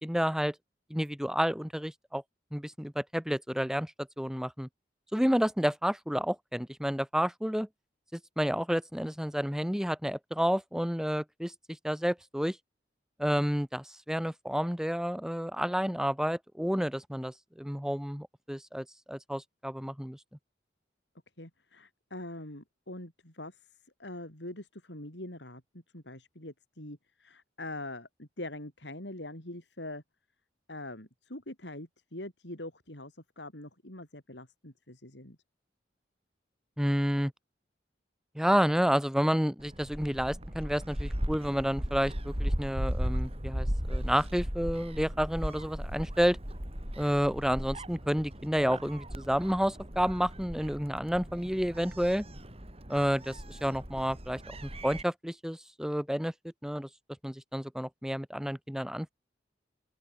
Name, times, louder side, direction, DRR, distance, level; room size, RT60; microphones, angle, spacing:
voice 1, 0.0-0.5 0.9-2.2 2.5-3.9 4.2-4.7 5.1-7.7 8.1-11.5 11.8-12.6 13.2-20.2 36.8-37.3 38.3-46.4 47.0-52.2 52.9-56.3 56.6-56.9 57.2-59.1, equal, 5° right, 1.8 m, -30 dB
voice 2, 21.4-30.0 30.7-35.4, left 1 dB, 75° left, 7.7 m, -43 dB
Gull seagull, 39.6-55.0, equal, 35° right, 6.8 m, -37 dB
open air
head